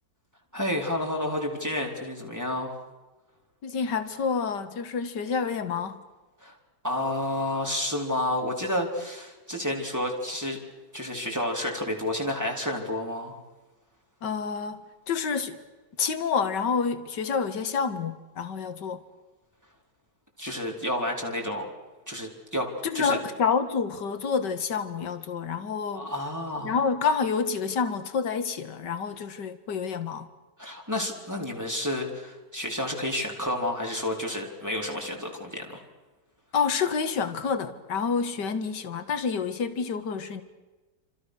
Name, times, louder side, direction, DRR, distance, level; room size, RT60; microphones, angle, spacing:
voice 1, 0.5-2.7 6.4-6.5 6.8-10.6 10.9-13.4 20.4-21.7 22.1-23.2 25.9-26.8 30.6-35.8, left 1 dB, 10° right, 4.0 m, -30 dB
voice 2, 3.6-6.0 14.2-15.6 16.0-19.0 22.8-26.0 26.6-30.3 36.5-40.4, left 5 dB, 60° left, 2.3 m, -28 dB
29.5 x 26.5 x 6.5 m
omnidirectional pair, 2.1 m